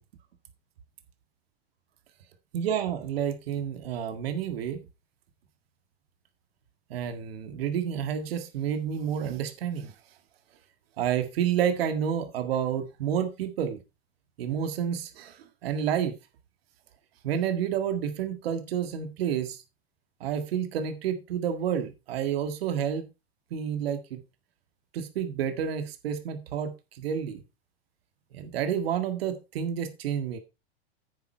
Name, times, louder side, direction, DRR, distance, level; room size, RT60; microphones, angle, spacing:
voice 1, 2.5-4.8 6.9-9.9 11.0-13.8 14.4-16.2 17.2-19.6 20.2-23.1 23.5-24.2 24.9-27.4 28.3-30.4, right 8 dB, 70° right, 8 dB, 1.9 m, -30 dB
9.6 x 8.1 x 4.4 m, 0.27 s
hypercardioid pair, 110°, 31 cm